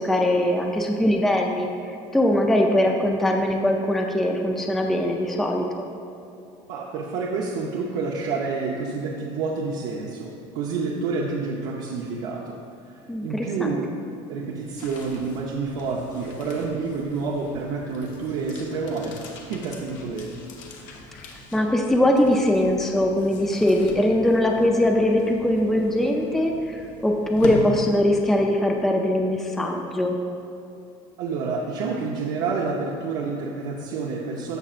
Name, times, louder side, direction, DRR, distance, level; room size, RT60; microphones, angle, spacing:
voice 1, 0.0-1.7 2.1-5.9 13.1-13.8 21.5-30.2, left 1 dB, ahead, 1 dB, 0.4 m, -21 dB
voice 2, 6.7-12.6 12.8-13.9 14.3-20.4 31.2-34.6, right 4 dB, 75° right, -3 dB, 0.8 m, -29 dB
sound 1, 14.4-28.5, left 2 dB, 65° left, 1.1 m, -40 dB
14.5 x 5.5 x 2.5 m, 2.6 s
cardioid pair, 140°, 14 cm